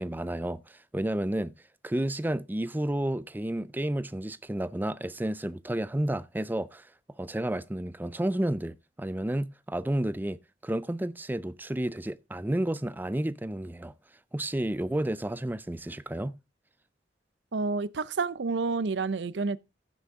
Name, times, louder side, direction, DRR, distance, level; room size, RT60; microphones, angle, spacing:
voice 1, 0.0-1.6 1.8-6.9 7.2-13.9 14.3-16.3, right 1 dB, 10° right, 0.5 m, -31 dB
voice 2, 17.5-19.6, right 4 dB, 70° right, 0.6 m, -29 dB
15.0 x 6.3 x 3.6 m
head